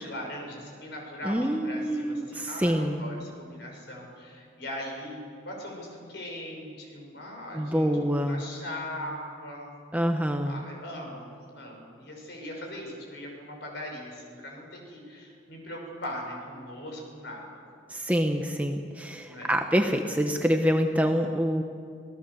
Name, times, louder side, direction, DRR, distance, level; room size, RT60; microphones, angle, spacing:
voice 1, 0.0-7.9 8.1-9.7 10.4-11.3 11.5-17.5 19.3-19.6, left 1 dB, 55° left, 0 dB, 6.2 m, -40 dB
voice 2, 1.2-3.1 7.5-8.4 9.9-10.6 17.9-21.6, equal, 10° right, 4 dB, 0.9 m, -26 dB
27.5 x 17.5 x 7.1 m, 2.3 s
head